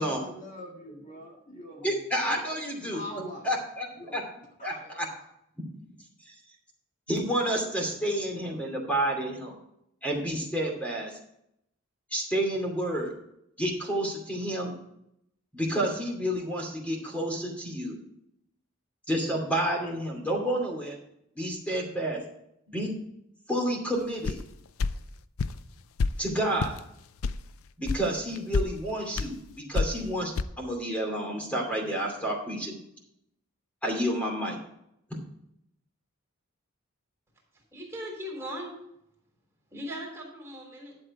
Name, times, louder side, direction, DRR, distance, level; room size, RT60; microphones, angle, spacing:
voice 1, 0.0-3.6 3.9-4.2 4.6-5.3, equal, 40° left, -1 dB, 1.8 m, -43 dB
voice 2, 1.8-3.0 3.4-4.2 4.6-5.1 6.2-6.3 7.1-9.5 10.0-11.2 12.1-13.1 13.6-14.8 15.5-18.0 19.1-20.9 21.3-22.2 22.7-22.9 23.5-24.4 26.2-26.8 27.8-32.7 33.8-34.6, right 1 dB, 5° left, 0 dB, 2.6 m, -30 dB
sound 1, 24.2-24.4 24.8-24.9 25.4-25.6 26.0-26.1 26.6-26.8 27.2-27.4 27.9-28.0 28.4-28.7 29.2-29.3 29.7-30.0 30.4-30.5, left 4 dB, 85° left, 0.5 m, -27 dB
voice 3, 37.5-38.7 39.7-41.0, equal, 10° right, -2 dB, 3.5 m, -39 dB
11.5 x 7.7 x 4.8 m, 0.77 s
head